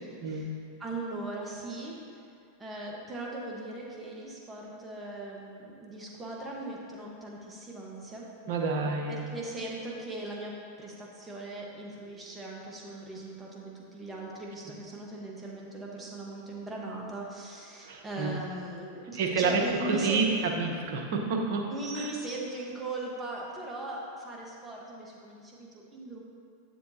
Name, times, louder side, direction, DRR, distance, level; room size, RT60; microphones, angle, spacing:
voice 1, 0.1-0.5 8.5-9.2 17.8-18.3 19.1-21.7 21.9-22.1, right 4 dB, 60° right, 1 dB, 1.1 m, -29 dB
voice 2, 0.8-2.0 2.6-8.2 9.1-20.3 21.7-26.2, right 2 dB, 15° right, -3 dB, 1.4 m, -39 dB
9.3 x 7.4 x 2.9 m, 2.4 s
hypercardioid pair, 105°, 0 cm